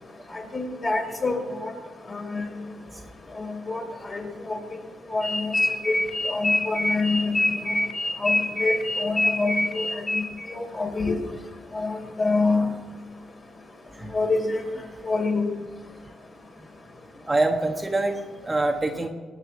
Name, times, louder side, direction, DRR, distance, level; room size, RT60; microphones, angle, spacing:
voice 1, 0.3-1.4 1.6-1.7 2.1-2.5 3.4-3.8 4.1-4.6 5.1-5.5 5.9-6.0 6.2-7.6 8.2-9.9 10.1-10.2 10.5-11.2 11.7-12.7 14.1-14.6 15.0-15.5, left 3 dB, 35° left, 2 dB, 3.6 m, -26 dB
sound 1, 5.2-10.5, left 1 dB, 15° left, 1.7 m, -25 dB
voice 2, 17.3-19.1, right 2 dB, 15° right, 2 dB, 1.3 m, -25 dB
20.0 x 6.8 x 7.8 m, 1.3 s
cardioid pair, 90°, 0 cm